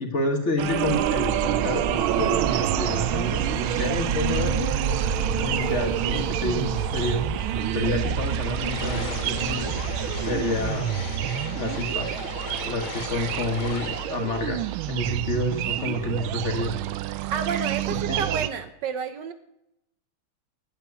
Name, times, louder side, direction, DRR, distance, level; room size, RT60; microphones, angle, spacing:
voice 1, 0.0-7.3 7.7-9.8 10.3-10.9 11.5-12.1 12.6-16.7 18.1-18.2, left 2 dB, 40° left, 4 dB, 1.4 m, -29 dB
sound 1, 0.6-18.5, right 13 dB, 85° right, 1.5 m, -28 dB
sound 2, 0.8-10.7, right 4 dB, 35° right, 0.6 m, -31 dB
sound 3, 8.1-15.5, left 4 dB, 70° left, 2.3 m, -37 dB
voice 2, 17.3-19.3, right 6 dB, 65° right, 10 dB, 1.3 m, -30 dB
8.9 x 8.3 x 9.5 m, 0.82 s
omnidirectional pair, 2.2 m